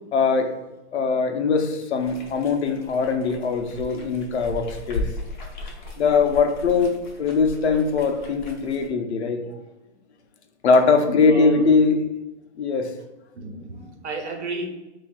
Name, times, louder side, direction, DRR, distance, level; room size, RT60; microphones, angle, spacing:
voice 1, 0.1-0.6 0.9-5.1 6.0-9.4 10.6-12.0 12.6-12.9, left 4 dB, 70° left, 5 dB, 0.8 m, -21 dB
sound 1, 2.0-8.9, left 2 dB, 45° left, 0.8 m, -36 dB
voice 2, 11.2-11.7 13.3-14.7, right 3 dB, 75° right, 2 dB, 1.2 m, -31 dB
7.3 x 2.7 x 2.4 m, 1.0 s
hypercardioid pair, 180°, 34 cm